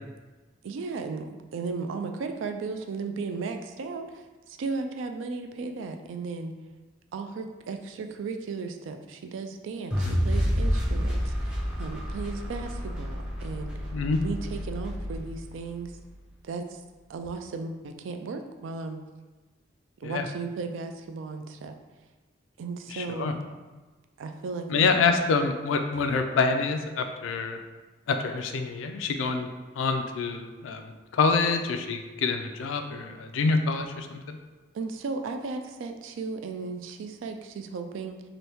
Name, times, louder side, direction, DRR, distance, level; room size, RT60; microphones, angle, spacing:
voice 1, 0.6-4.2 4.6-6.5 7.1-13.7 14.2-15.9 16.4-16.8 17.1-19.0 20.0-21.7 22.6-23.4 24.2-24.9 34.7-38.2, right 4 dB, 85° right, 6 dB, 0.3 m, -35 dB
sound 1, 9.9-16.1, equal, 5° right, 0.4 m, -29 dB
voice 2, 22.9-23.3 24.7-27.6 28.1-29.5 29.8-34.4, left 4 dB, 90° left, 6 dB, 0.4 m, -26 dB
2.8 x 2.6 x 3.4 m, 1.2 s
head